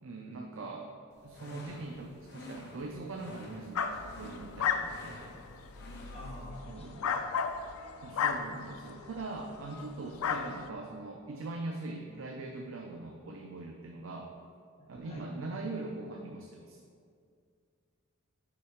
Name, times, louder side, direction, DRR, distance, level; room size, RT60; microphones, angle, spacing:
voice 1, 0.0-0.9 1.2-5.2 6.7-7.1 8.0-14.3 14.9-16.8, right 2 dB, 65° right, 1 dB, 0.5 m, -42 dB
sound 1, 1.1-6.5, left 1 dB, 55° left, 0.8 m, -50 dB
sound 2, 3.8-9.3 9.7-9.9 10.2-10.7, left 6 dB, 85° left, 0.4 m, -34 dB
voice 2, 6.1-6.9 14.8-15.3, left 1 dB, 30° left, -2 dB, 1.1 m, -47 dB
5.8 x 4.4 x 4.9 m, 2.2 s
head